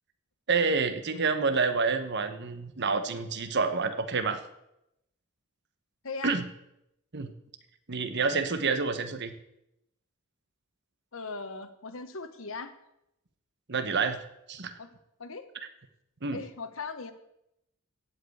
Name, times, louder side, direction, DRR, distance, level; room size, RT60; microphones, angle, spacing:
voice 1, 0.5-4.4 6.2-6.4 7.1-7.3 7.9-9.3 13.7-14.2 14.5-14.7 16.2-16.4, right 4 dB, 50° right, 8 dB, 1.1 m, -28 dB
voice 2, 6.0-6.4 11.1-12.7 14.8-14.9 15.2-15.5 16.3-17.1, left 4 dB, 65° left, 10 dB, 1.2 m, -38 dB
16.0 x 5.4 x 8.6 m, 0.83 s
head